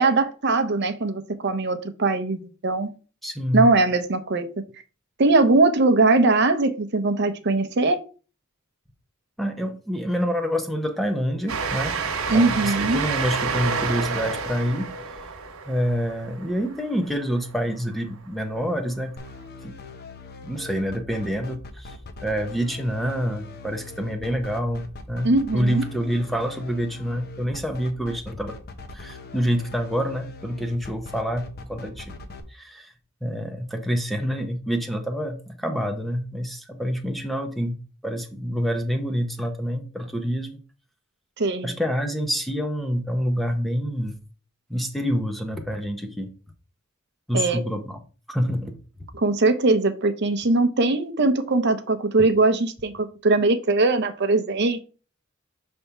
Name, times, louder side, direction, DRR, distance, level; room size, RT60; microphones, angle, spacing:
voice 1, 0.0-2.9 3.5-4.5 5.2-8.0 12.3-13.0 25.2-25.8 41.4-41.8 47.3-47.6 49.1-54.8, right 3 dB, 55° right, 10 dB, 0.7 m, -21 dB
voice 2, 3.2-3.7 9.4-11.9 12.3-14.9 15.7-19.1 19.6-19.7 20.4-28.6 28.9-32.1 32.5-32.9 33.2-40.5 41.6-44.2 44.7-46.3 47.3-48.0 48.3-48.8, equal, ahead, 4 dB, 0.7 m, -27 dB
Train, 11.5-17.6, right 5 dB, 80° right, 0.9 m, -29 dB
sound 1, 19.2-32.4, left 3 dB, 45° left, 0.8 m, -41 dB
5.4 x 3.5 x 5.7 m, 0.37 s
head